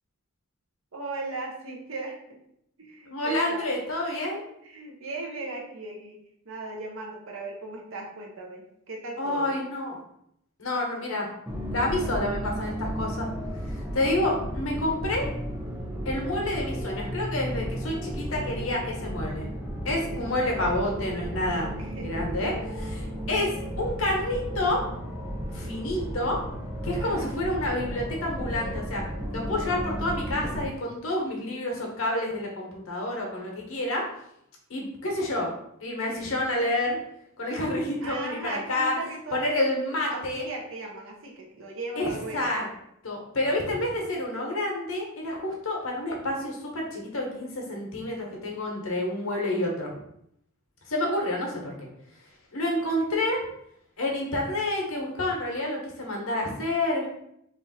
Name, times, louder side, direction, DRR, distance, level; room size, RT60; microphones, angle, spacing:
voice 1, 0.9-2.4 2.8-3.7 4.6-6.2 6.4-9.5 21.8-22.3 27.0-27.3 38.0-42.5, right 2 dB, 70° right, -1 dB, 0.9 m, -38 dB
voice 2, 3.1-4.4 9.2-10.0 10.6-11.3 11.7-13.3 13.6-15.3 16.0-19.5 19.8-21.8 22.0-24.8 25.5-26.4 26.8-29.0 29.3-34.0 34.7-37.0 37.4-38.9 39.3-40.4 42.0-42.6 43.0-49.9 50.9-51.9 52.5-53.4 54.0-57.1, left 1 dB, 85° left, 0 dB, 1.1 m, -29 dB
sound 1, 11.5-30.7, equal, 10° right, 0.6 m, -34 dB
3.3 x 2.6 x 4.1 m, 0.76 s
head